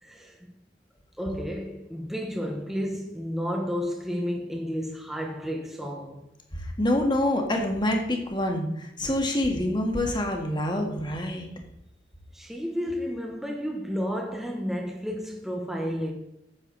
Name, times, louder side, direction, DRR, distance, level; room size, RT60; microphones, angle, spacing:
voice 1, 0.0-0.4 1.2-6.2 12.3-16.1, equal, ahead, 1.1 m, -31 dB
voice 2, 6.5-11.5, left 1 dB, 25° left, 1.8 m, -26 dB
10.0 x 8.2 x 4.0 m
head